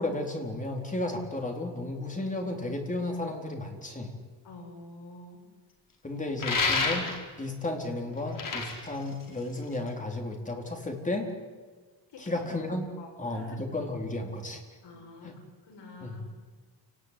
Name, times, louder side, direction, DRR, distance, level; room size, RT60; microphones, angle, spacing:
voice 1, 0.0-4.1 6.0-7.1 7.4-11.3 12.2-12.9 13.2-14.6 15.2-15.3 16.0-16.2, left 2 dB, 15° left, 2 dB, 4.3 m, -33 dB
voice 2, 4.4-5.4 12.1-12.5 13.0-13.6 14.8-16.3, left 2 dB, 70° left, 1 dB, 7.6 m, -48 dB
sound 1, 6.4-7.4 8.2-9.9, left 3 dB, 45° left, 5.0 m, -29 dB
29.0 x 19.0 x 10.0 m, 1.4 s
cardioid pair, 145°, 44 cm